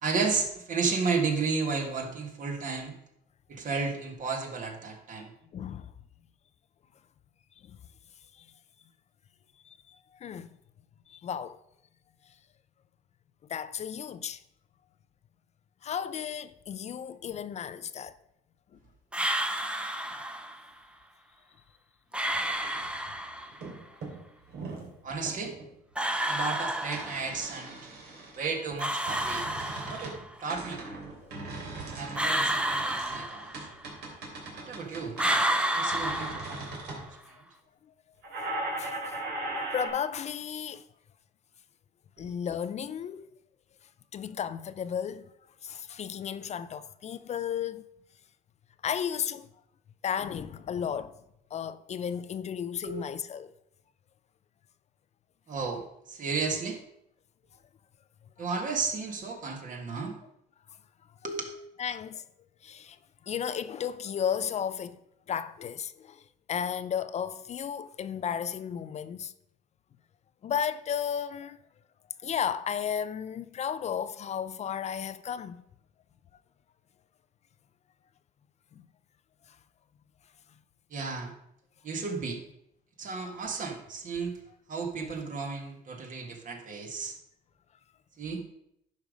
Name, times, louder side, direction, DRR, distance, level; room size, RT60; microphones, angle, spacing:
voice 1, 0.0-2.9 3.5-5.3 25.0-25.6 26.3-27.8 28.4-29.5 29.9-30.8 31.9-33.7 34.6-35.2 35.7-36.6 36.9-37.3 42.2-42.3 52.8-53.0 55.5-56.8 58.4-60.2 61.2-61.5 80.9-81.3 81.8-82.4 83.0-84.3 84.7-87.2 88.2-88.4, right 4 dB, 50° right, 1.9 m, -33 dB
voice 2, 5.5-5.9 9.7-10.0 10.2-10.5 11.1-11.6 13.5-14.4 15.8-18.1 38.8-39.0 39.7-40.8 42.2-43.3 44.1-45.3 45.6-47.8 48.8-49.5 50.0-51.1 51.5-53.5 61.8-62.2 62.6-63.0 63.3-65.0 65.3-66.2 66.5-69.3 70.4-71.6 72.2-75.6, left 8 dB, 40° left, 0.4 m, -33 dB
sound 1, 19.1-20.6 22.1-23.6 25.9-27.5 28.8-30.3 32.1-33.9 35.2-37.0, right 1 dB, 5° right, 0.7 m, -30 dB
sound 2, 22.3-23.2 23.5-23.8 24.0-24.9 25.3-25.7 26.9-28.4 28.8-30.2 30.5-37.0 38.2-39.9, right 2 dB, 75° right, 2.8 m, -39 dB
10.5 x 5.3 x 5.1 m
cardioid pair, 110°, 17 cm